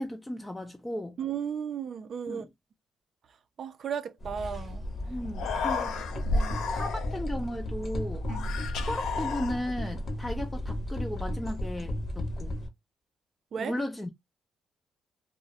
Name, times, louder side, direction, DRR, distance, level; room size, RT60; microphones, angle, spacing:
voice 1, 0.0-1.2 2.3-2.5 5.1-6.0 6.7-8.3 8.9-12.6 13.6-14.1, left 1 dB, 10° left, 0.4 m, -35 dB
voice 2, 1.2-2.5 3.6-4.8 5.6-5.7 6.3-6.6 8.3-8.4 13.5-13.7, right 7 dB, 55° right, 0.4 m, -35 dB
sound 1, 4.2-12.7, left 1 dB, 35° left, 0.7 m, -35 dB
Human voice, 4.8-5.0 5.2-7.3 8.2-9.9, left 3 dB, 80° left, 0.4 m, -32 dB
2.2 x 2.1 x 2.7 m
cardioid pair, 90°, 0 cm